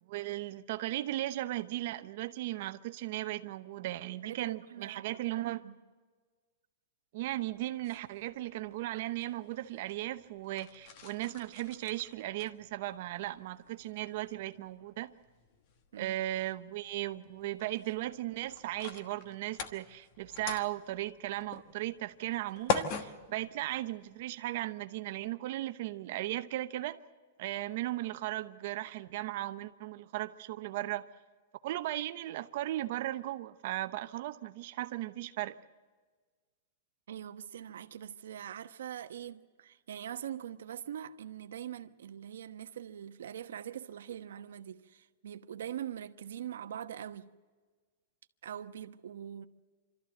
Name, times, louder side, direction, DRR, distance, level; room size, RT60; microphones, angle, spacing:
voice 1, 0.1-5.6 7.1-15.1 16.0-27.0 27.4-31.1 31.6-35.6, right 15 dB, 40° right, 0.8 m, -37 dB
voice 2, 4.2-5.7 15.9-16.2 37.1-47.3 48.4-49.5, right 10 dB, 80° right, 1.0 m, -43 dB
sound 1, 7.2-24.3, left 6 dB, 30° left, 1.2 m, -43 dB
26.0 x 13.5 x 7.9 m
supercardioid pair, 180°, 0 cm